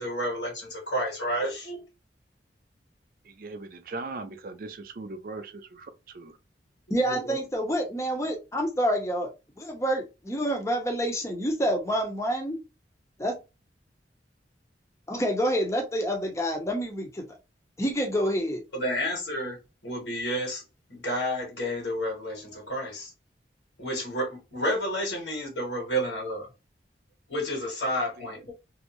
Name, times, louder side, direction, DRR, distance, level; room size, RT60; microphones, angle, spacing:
voice 1, 0.0-1.8 6.9-7.4 18.7-19.6 19.8-20.6 20.9-23.1 23.8-26.5 27.3-28.5, equal, 75° left, 1.4 m, -30 dB
voice 2, 3.3-5.9 6.1-6.3 28.2-28.3, right 3 dB, 50° right, 0.4 m, -39 dB
voice 3, 6.9-9.3 9.6-12.6 13.2-13.3 15.1-17.3 17.8-18.6, equal, 15° left, 0.7 m, -27 dB
3.1 x 2.7 x 2.9 m
head